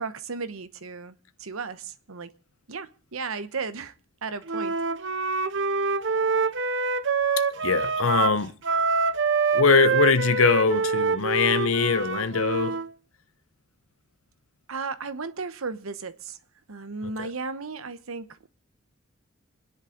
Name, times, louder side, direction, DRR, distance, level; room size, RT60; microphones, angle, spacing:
voice 1, 0.0-2.3 2.7-3.9 4.2-4.8 14.7-16.4 16.7-18.5, right 4 dB, 90° right, 1.0 m, -35 dB
Wind instrument woodwind instrument, 4.5-12.9, right 4 dB, 60° right, 0.7 m, -25 dB
voice 2, 7.4-8.5 9.5-12.8 17.0-17.3, left 5 dB, 80° left, 0.9 m, -22 dB
26.5 x 10.5 x 3.8 m
head